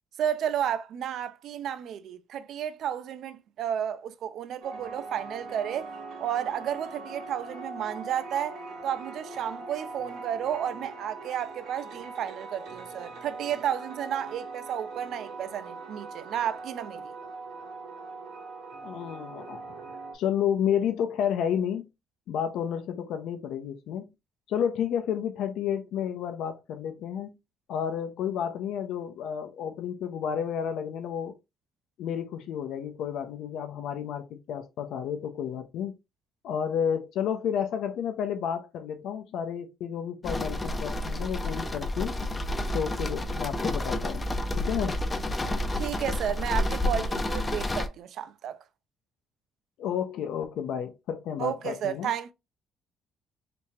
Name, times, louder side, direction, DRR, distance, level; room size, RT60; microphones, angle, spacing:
voice 1, 0.2-5.9 6.2-8.6 8.8-17.2 45.8-48.6 51.4-52.3, right 9 dB, 60° right, 0.3 m, -32 dB
sound 1, 4.6-20.1, right 3 dB, 80° right, 1.3 m, -41 dB
voice 2, 18.8-19.8 20.1-21.9 22.3-24.1 24.5-27.3 27.7-31.3 32.0-35.9 36.4-42.2 42.7-44.2 44.6-45.0 49.8-52.1, left 8 dB, 70° left, 0.5 m, -31 dB
sound 2, 40.2-47.9, left 1 dB, 15° left, 0.4 m, -30 dB
3.4 x 2.8 x 3.0 m
cardioid pair, 160°, 0 cm